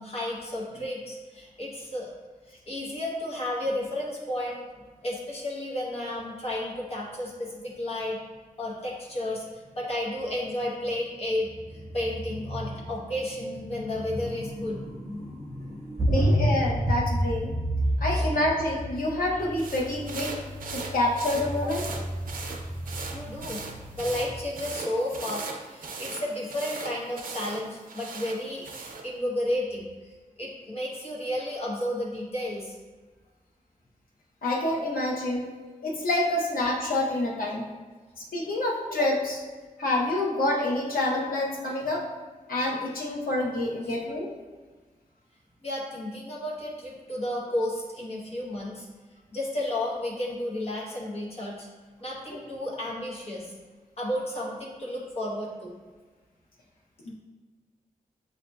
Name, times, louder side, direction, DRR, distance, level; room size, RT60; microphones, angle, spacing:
voice 1, 0.0-2.1 2.5-4.6 5.0-8.2 8.6-16.3 17.9-18.3 21.9-22.0 23.1-23.6 24.0-29.9 30.4-32.7 43.8-43.9 45.6-48.9 49.3-51.7 52.0-53.5 54.0-55.7, left 1 dB, 45° left, -4 dB, 1.0 m, -32 dB
sound 1, 16.0-24.5, equal, 20° right, 0.4 m, -29 dB
voice 2, 16.1-17.5 18.0-20.3 20.7-21.9 34.4-35.5 35.8-37.7 38.2-39.4 39.8-42.1 42.5-44.3 57.0-57.1, left 1 dB, 85° left, -2 dB, 0.8 m, -27 dB
sound 2, 19.6-29.1, right 4 dB, 80° right, 0.5 m, -39 dB
7.0 x 2.7 x 2.2 m, 1.4 s
wide cardioid pair, 160°, 14 cm